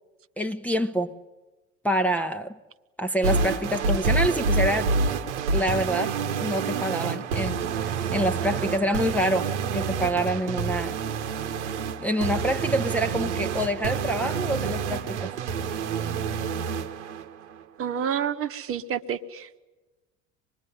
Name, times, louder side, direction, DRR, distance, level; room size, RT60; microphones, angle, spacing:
voice 1, 0.4-1.1 1.8-2.5 3.0-4.9 5.5-10.9 12.0-15.3, equal, 5° left, 1.0 m, -27 dB
sound 1, 3.2-17.3, right 4 dB, 70° right, 1.4 m, -28 dB
voice 2, 17.8-19.6, right 8 dB, 35° right, 1.3 m, -29 dB
25.5 x 21.5 x 9.7 m
figure-of-eight pair, 65°, 37 cm